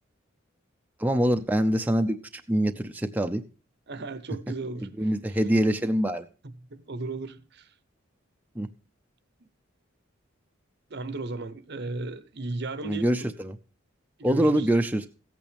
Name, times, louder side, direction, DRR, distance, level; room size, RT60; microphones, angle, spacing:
voice 1, 1.0-2.2 2.5-3.4 4.8-6.3 8.6-8.7 12.8-13.6 14.2-15.1, right 1 dB, 10° right, 0.6 m, -24 dB
voice 2, 3.9-5.1 6.4-7.7 10.9-13.3 14.2-14.7, right 3 dB, 55° right, 0.9 m, -35 dB
15.0 x 8.7 x 3.4 m
head